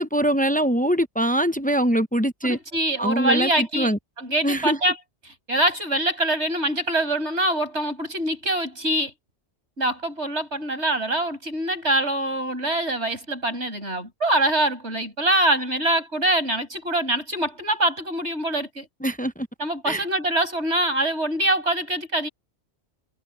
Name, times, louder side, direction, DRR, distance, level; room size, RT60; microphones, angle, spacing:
voice 1, 0.0-2.6 3.0-4.0 4.4-4.8 19.0-19.5 19.9-20.0, right 1 dB, 10° left, 0.6 m, -23 dB
voice 2, 2.4-3.9 4.2-5.0 5.5-9.1 9.8-18.9 19.6-22.3, right 1 dB, 80° right, 7.5 m, -24 dB
omnidirectional pair, 1.1 m